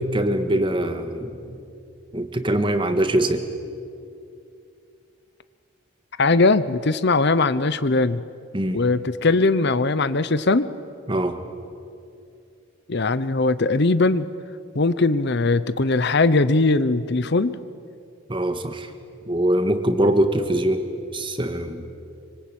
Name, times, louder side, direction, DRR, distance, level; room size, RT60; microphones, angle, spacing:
voice 1, 0.0-1.6 2.1-3.4 8.5-8.8 11.1-11.4 18.3-18.9 19.3-20.8 21.1-21.8, right 1 dB, 20° right, 8 dB, 1.7 m, -23 dB
voice 2, 6.2-8.2 8.7-10.7 12.9-14.3 14.7-17.6, left 3 dB, 50° left, 14 dB, 0.8 m, -20 dB
26.5 x 25.0 x 8.8 m, 2.5 s
head